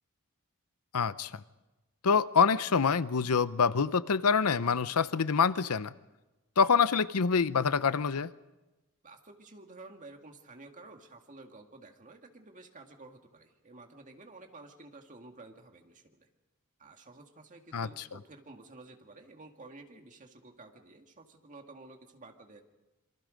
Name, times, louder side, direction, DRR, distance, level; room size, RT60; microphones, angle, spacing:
voice 1, 0.9-1.3 2.0-5.9 6.6-8.3 17.7-17.9, left 5 dB, 85° left, 15 dB, 0.7 m, -26 dB
voice 2, 9.0-16.3 16.8-22.6, right 2 dB, 35° right, 3 dB, 2.2 m, -52 dB
27.0 x 24.0 x 5.2 m, 1.1 s
head